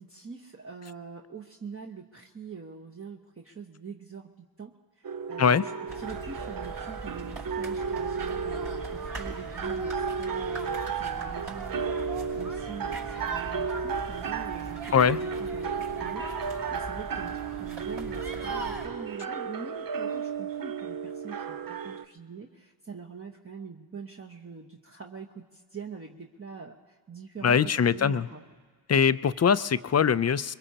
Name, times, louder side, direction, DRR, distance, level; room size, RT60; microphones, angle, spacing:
voice 1, 0.0-4.3 4.6-5.7 6.0-28.4, right 5 dB, 30° right, 0 dB, 1.2 m, -44 dB
sound 1, 5.0-22.0, right 6 dB, 45° right, 0.8 m, -34 dB
sound 2, 5.9-18.9, right 2 dB, 65° right, 5.4 m, -40 dB
voice 2, 27.4-28.3 28.9-30.5, left 7 dB, 35° left, 15 dB, 0.5 m, -22 dB
22.0 x 22.0 x 2.9 m, 1.5 s
supercardioid pair, 40°, 47 cm